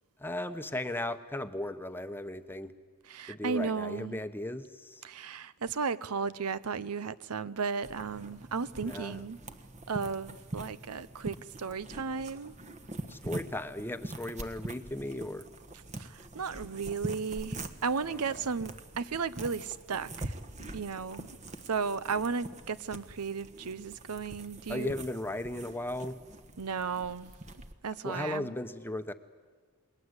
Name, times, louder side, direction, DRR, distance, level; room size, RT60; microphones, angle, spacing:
voice 1, 0.2-2.7 3.3-5.0 8.8-9.2 13.1-15.5 18.1-18.2 24.7-26.2 28.0-29.1, left 1 dB, 10° left, 0.9 m, -36 dB
voice 2, 3.1-4.2 5.0-9.4 9.9-12.5 16.0-20.4 20.7-21.4 21.6-24.9 26.6-27.3 27.8-28.5, right 5 dB, 85° right, 0.7 m, -34 dB
sound 1, 7.8-27.7, right 2 dB, 30° right, 1.3 m, -44 dB
28.5 x 20.5 x 8.1 m
head